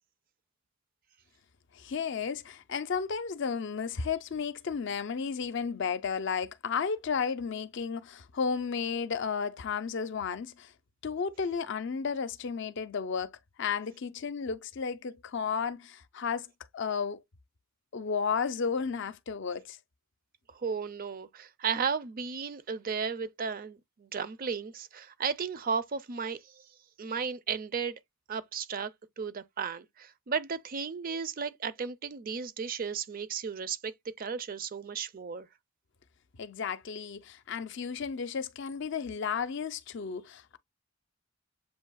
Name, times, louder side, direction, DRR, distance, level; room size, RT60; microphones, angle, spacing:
voice 1, 1.7-10.7 11.0-16.5 16.7-17.2 17.9-19.8 36.4-40.6, left 6 dB, 60° left, 0.5 m, -33 dB
voice 2, 20.5-26.6 27.0-28.0 28.3-28.9 29.2-35.5, right 6 dB, 45° right, 0.5 m, -34 dB
7.4 x 2.7 x 2.3 m
head